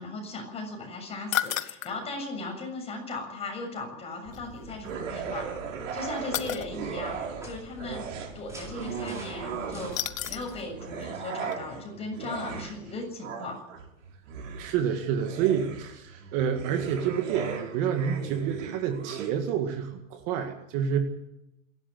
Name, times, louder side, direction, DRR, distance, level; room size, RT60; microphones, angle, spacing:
voice 1, 0.0-5.4 5.9-7.2 7.4-8.0 8.3-9.9 10.3-13.5, left 2 dB, 15° left, 2 dB, 7.1 m, -37 dB
sound 1, 1.3-2.0 4.3-4.4 6.3-6.7 9.9-10.6 11.0-11.1 11.5-11.6, left 11 dB, 85° left, 1.7 m, -31 dB
sound 2, 4.3-10.7, equal, 5° right, 6.0 m, -45 dB
sound 3, 4.8-7.5 7.8-10.2 10.7-19.3, right 6 dB, 70° right, 5.5 m, -37 dB
voice 2, 14.6-21.0, right 8 dB, 35° right, 5 dB, 2.0 m, -28 dB
27.5 x 12.5 x 8.1 m, 0.87 s
supercardioid pair, 155°, 39 cm